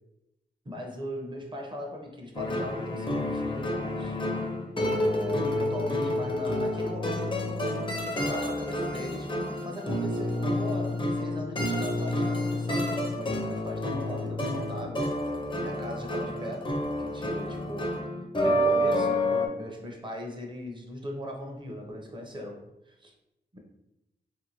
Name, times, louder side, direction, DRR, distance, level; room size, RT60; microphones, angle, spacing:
voice 1, 0.6-4.2 4.8-9.4 9.6-15.1 15.6-16.7 17.0-17.9 18.4-23.1 23.5-23.6, left 1 dB, 25° right, 1 dB, 0.7 m, -39 dB
sound 1, 2.3-19.5, left 1 dB, 30° left, 0.5 m, -29 dB
2.6 x 2.5 x 2.8 m, 0.89 s
cardioid pair, 65°, 18 cm